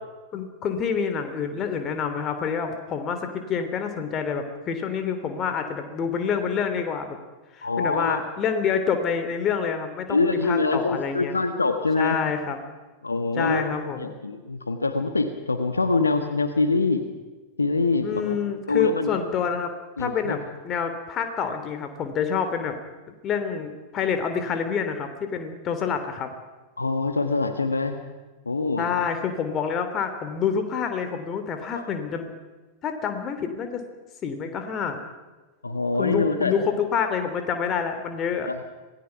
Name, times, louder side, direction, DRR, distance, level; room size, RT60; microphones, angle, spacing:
voice 1, 0.3-7.1 7.5-11.4 12.0-12.6 13.4-14.1 18.0-19.7 20.0-22.8 23.2-26.3 28.8-32.3 32.8-33.8 34.2-35.0 36.0-38.5, left 6 dB, 30° left, 7 dB, 3.0 m, -27 dB
voice 2, 7.6-8.2 10.1-12.2 13.0-17.1 17.6-19.1 20.0-20.4 26.8-28.0 28.4-29.0 31.7-31.9 35.6-36.5 38.5-38.6, left 3 dB, 80° left, 8 dB, 1.5 m, -25 dB
26.5 x 18.5 x 5.9 m, 1.2 s
figure-of-eight pair, 90°, 0 cm